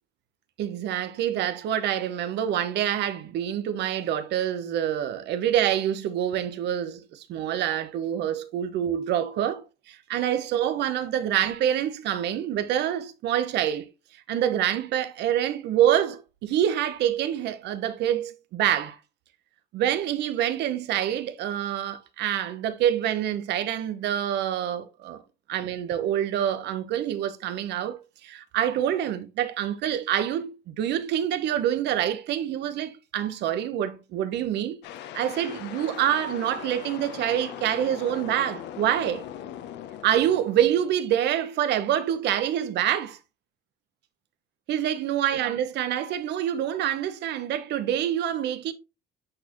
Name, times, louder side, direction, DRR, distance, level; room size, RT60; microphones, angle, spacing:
voice 1, 0.6-13.9 14.3-19.0 19.7-25.2 25.5-34.8 35.1-39.2 40.0-43.2 44.7-48.7, right 10 dB, 75° right, 0.9 m, -26 dB
sound 1, 34.8-41.1, left 10 dB, 85° left, 0.8 m, -40 dB
8.8 x 4.3 x 3.0 m
cardioid pair, 155°, 18 cm